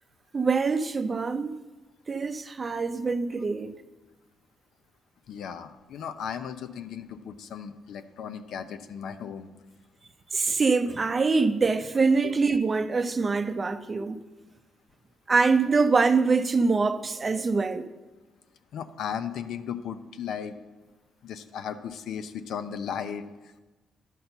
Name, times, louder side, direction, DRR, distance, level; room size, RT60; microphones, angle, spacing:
voice 1, 0.3-1.6 2.1-3.8 10.3-14.2 15.3-17.9, right 4 dB, 30° right, 0.6 m, -24 dB
voice 2, 5.3-9.5 12.2-12.3 18.7-20.5 21.2-23.2, left 8 dB, 75° left, 0.6 m, -36 dB
11.0 x 4.3 x 6.8 m
cardioid pair, 90°, 0 cm